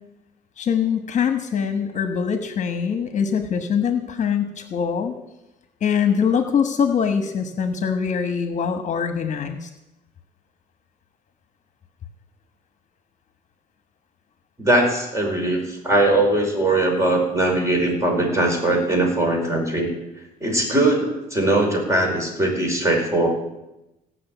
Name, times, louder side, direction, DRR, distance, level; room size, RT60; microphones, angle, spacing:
voice 1, 0.6-5.1 5.8-9.7, left 7 dB, 45° left, 8 dB, 1.3 m, -23 dB
voice 2, 14.6-19.9 20.4-23.3, right 1 dB, 15° right, 1 dB, 4.9 m, -20 dB
16.5 x 6.4 x 9.2 m, 0.94 s
cardioid pair, 110°, 17 cm